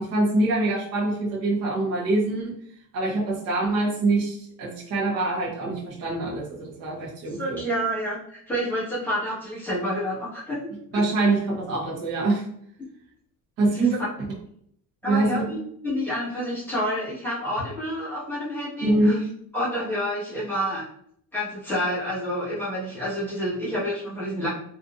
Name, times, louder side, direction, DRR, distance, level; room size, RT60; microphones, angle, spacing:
voice 1, 0.0-2.5 2.9-7.6 10.9-12.4 13.6-13.9 15.1-15.4 18.8-19.2, right 2 dB, 45° right, -4 dB, 0.9 m, -24 dB
voice 2, 7.4-10.6 10.9-11.0 13.7-13.9 15.0-15.6 15.8-19.2 19.5-20.8 21.3-24.5, equal, 5° left, -10 dB, 1.3 m, -28 dB
3.8 x 2.5 x 2.5 m, 0.67 s
cardioid pair, 180°, 35 cm